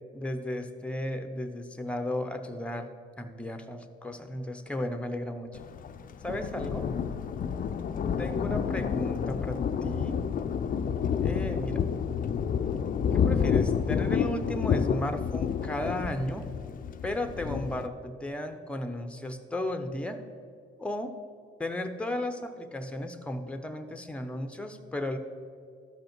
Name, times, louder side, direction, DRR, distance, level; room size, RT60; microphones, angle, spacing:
voice 1, 0.1-2.9 3.2-5.6 6.2-6.9 8.2-10.3 11.2-11.8 13.1-16.5 17.0-20.3 20.8-21.1 21.6-25.2, left 1 dB, 5° left, 7 dB, 0.7 m, -34 dB
Thunder, 5.5-17.9, left 7 dB, 45° left, 0.4 m, -29 dB
12.5 x 5.2 x 4.5 m, 2.3 s
cardioid pair, 90°, 20 cm